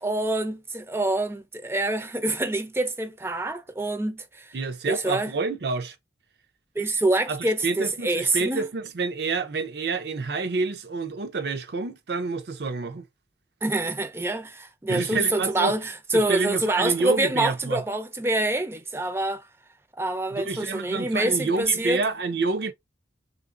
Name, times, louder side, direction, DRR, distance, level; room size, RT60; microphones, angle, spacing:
voice 1, 0.0-4.5 4.9-5.3 6.8-8.7 13.6-19.5 20.0-22.0, right 2 dB, 15° right, 0.4 m, -26 dB
voice 2, 4.5-6.0 7.3-13.0 14.9-15.7 16.1-17.8 20.3-22.7, right 3 dB, 65° right, 0.5 m, -28 dB
3.5 x 2.5 x 2.4 m
head